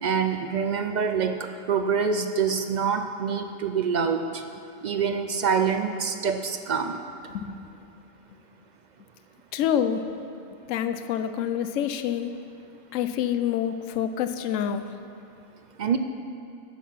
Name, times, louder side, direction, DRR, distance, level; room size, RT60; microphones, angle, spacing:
voice 1, 0.0-4.4 4.8-7.0 15.8-16.0, right 6 dB, 65° right, 7 dB, 0.4 m, -26 dB
voice 2, 7.3-7.7 9.5-10.0 10.7-12.3 12.9-14.8, left 9 dB, 75° left, 10 dB, 1.0 m, -27 dB
16.0 x 6.4 x 5.7 m, 2.7 s
omnidirectional pair, 1.4 m